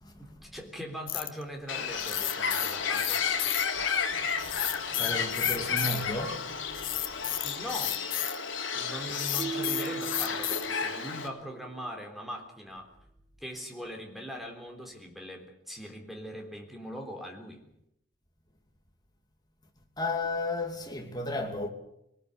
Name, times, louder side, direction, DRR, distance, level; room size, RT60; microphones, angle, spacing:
voice 1, 0.2-3.3 7.4-8.0 8.7-12.9 13.4-17.6, equal, ahead, 3.6 m, -41 dB
sound 1, 1.1-1.4 2.0-3.6 4.4-6.0 6.7-8.4 9.1-10.7, left 14 dB, 45° left, 1.1 m, -32 dB
Bird, 1.7-11.3, left 6 dB, 70° left, 3.5 m, -32 dB
voice 2, 5.0-6.6 20.0-21.7, left 2 dB, 20° left, 2.6 m, -33 dB
sound 2, 9.4-11.5, right 5 dB, 45° right, 2.6 m, -38 dB
22.5 x 19.0 x 8.2 m
head